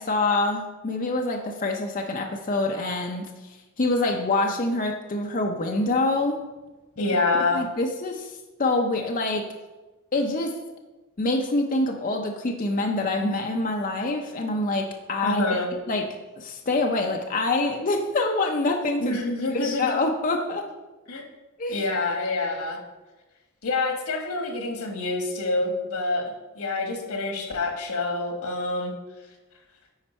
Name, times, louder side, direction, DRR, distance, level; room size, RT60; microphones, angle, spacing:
voice 1, 0.0-3.3 3.8-6.4 7.5-9.5 10.1-10.5 11.2-15.6 15.9-16.1 16.4-19.2 19.5-20.6 21.6-21.8, left 2 dB, 40° left, 2 dB, 0.6 m, -25 dB
voice 2, 7.0-7.6 15.2-15.7 19.0-20.0 21.1-21.2 21.7-22.8 23.6-26.2 26.6-28.9, left 2 dB, 90° left, 3 dB, 1.3 m, -26 dB
9.6 x 4.4 x 4.3 m, 1.1 s
head